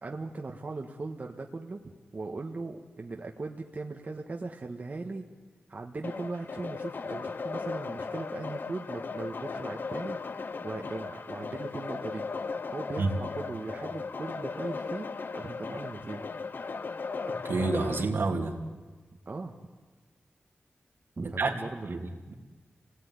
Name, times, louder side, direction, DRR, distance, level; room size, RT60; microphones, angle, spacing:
voice 1, 0.0-5.2 5.7-10.2 10.6-12.3 12.7-16.3 19.2-19.6 21.2-22.2, right 3 dB, 45° right, 2 dB, 1.6 m, -38 dB
sound 1, 6.0-18.1, left 4 dB, 55° left, 0.9 m, -37 dB
voice 2, 17.4-18.5 21.4-21.5 21.8-22.0, right 3 dB, 75° right, 2 dB, 3.0 m, -28 dB
27.5 x 18.5 x 9.8 m, 1.3 s
wide cardioid pair, 95°, 4 cm